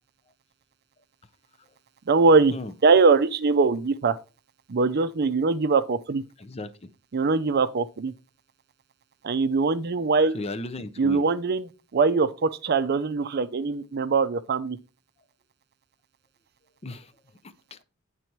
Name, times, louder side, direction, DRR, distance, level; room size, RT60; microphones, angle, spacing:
voice 1, 2.1-2.5 2.8-4.2 4.7-6.2 7.1-8.1 9.2-10.4 11.0-11.7 11.9-14.8, right 4 dB, 50° right, 0.5 m, -22 dB
voice 2, 6.4-6.9 10.3-11.2 16.8-17.8, left 2 dB, 30° left, 0.6 m, -36 dB
9.2 x 4.1 x 4.5 m
head